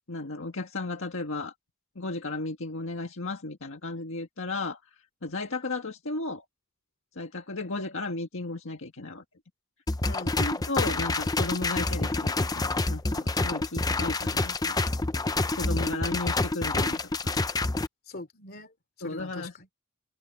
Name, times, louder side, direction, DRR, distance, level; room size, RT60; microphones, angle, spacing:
voice 1, 0.1-1.5 2.0-6.4 7.1-9.2 10.4-14.8 15.5-17.4 19.0-19.5, left 2 dB, 65° left, 1.8 m, -34 dB
sound 1, 9.9-17.9, left 2 dB, 15° left, 0.6 m, -27 dB
voice 2, 10.0-10.7 18.1-18.7 19.0-19.7, left 2 dB, 45° left, 3.3 m, -43 dB
head